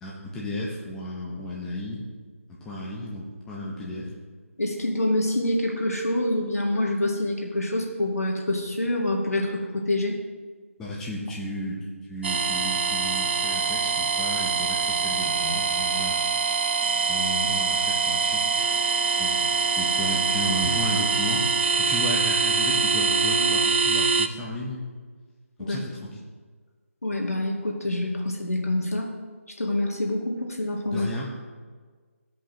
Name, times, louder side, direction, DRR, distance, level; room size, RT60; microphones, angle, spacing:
voice 1, 0.0-2.0 2.6-4.1 10.8-11.8 12.1-16.2 17.1-18.4 18.7-21.5 21.8-24.8 25.6-26.2 30.9-31.3, left 1 dB, 5° left, -5 dB, 0.9 m, -33 dB
voice 2, 4.6-10.2 25.6-25.8 27.0-29.1 29.6-31.1, left 1 dB, 85° left, 0 dB, 1.7 m, -26 dB
sound 1, 12.2-24.3, right 5 dB, 50° right, 0.4 m, -24 dB
15.5 x 5.2 x 3.0 m, 1.5 s
figure-of-eight pair, 160°, 8 cm